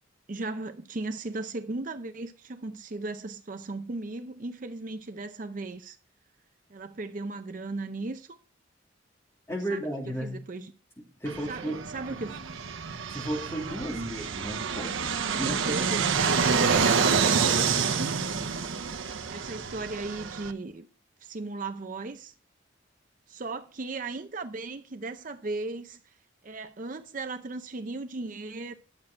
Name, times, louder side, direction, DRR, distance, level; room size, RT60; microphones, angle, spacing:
voice 1, 0.3-6.0 6.7-8.4 9.7-9.8 10.2-10.7 11.5-12.4 13.9-14.1 15.3-18.2 19.3-20.9 21.2-22.3 23.3-26.2 26.4-28.7, right 2 dB, 40° right, 0.6 m, -36 dB
voice 2, 9.5-10.4 11.2-11.8 12.1-12.2 13.1-15.8, right 1 dB, 15° left, 2.8 m, -34 dB
Fixed-wing aircraft airplane, 11.3-20.5, right 5 dB, 85° right, 0.9 m, -28 dB
11.0 x 7.4 x 4.4 m
head